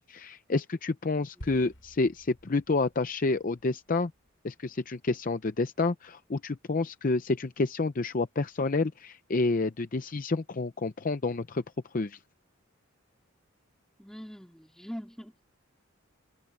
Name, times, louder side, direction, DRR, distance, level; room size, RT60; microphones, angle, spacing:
voice 1, 0.0-4.1 4.4-11.6 11.9-12.2, left 3 dB, 40° left, 0.6 m, -29 dB
sound 1, 1.4-5.8, equal, 65° left, 6.4 m, -52 dB
voice 2, 14.0-15.4, equal, ahead, 3.8 m, -43 dB
head